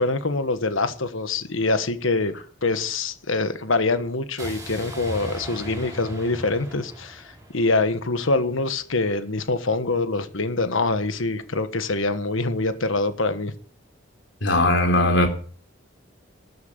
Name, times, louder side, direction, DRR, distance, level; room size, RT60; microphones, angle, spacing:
voice 1, 0.0-2.3 2.6-7.2 7.5-13.5, left 3 dB, 80° left, 1.4 m, -24 dB
sound 1, 4.4-8.4, right 1 dB, 15° right, 6.8 m, -38 dB
voice 2, 14.4-15.3, left 1 dB, 65° left, 3.6 m, -19 dB
13.5 x 9.5 x 6.7 m
head